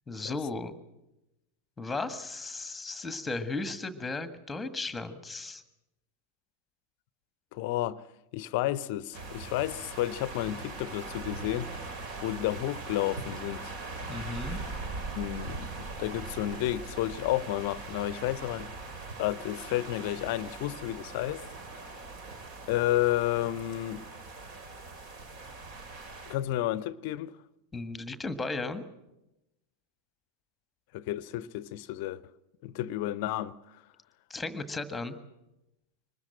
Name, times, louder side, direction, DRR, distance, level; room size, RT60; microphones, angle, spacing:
voice 1, 0.1-0.7 1.8-5.6 14.1-14.6 27.7-28.8 34.3-35.2, left 3 dB, 10° left, 1.6 m, -35 dB
voice 2, 7.5-8.0 8.3-11.7 12.2-13.7 15.1-18.7 19.2-21.5 22.7-24.0 26.3-27.4 30.9-32.2 32.6-33.6, left 14 dB, 45° left, 0.7 m, -31 dB
sound 1, 9.1-26.3, right 3 dB, 45° right, 2.8 m, -41 dB
23.5 x 20.0 x 7.7 m
figure-of-eight pair, 90°, 0 cm